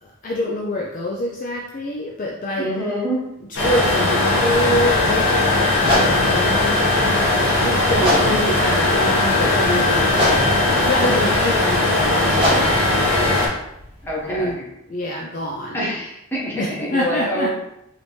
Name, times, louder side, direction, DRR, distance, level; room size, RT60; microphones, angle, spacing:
voice 1, 0.0-3.0 3.5-6.8 7.1-10.1 10.7-12.8 14.2-14.6 14.9-15.8 16.5-17.5, equal, 35° left, -1 dB, 0.4 m, -26 dB
voice 2, 2.6-3.2 14.0-14.5 15.7-17.5, equal, 10° left, -6 dB, 1.0 m, -25 dB
sound 1, 3.6-13.5, left 2 dB, 55° left, 1.3 m, -18 dB
sound 2, 5.8-14.5, equal, 25° right, 0.9 m, -27 dB
4.9 x 2.7 x 3.1 m, 0.85 s
head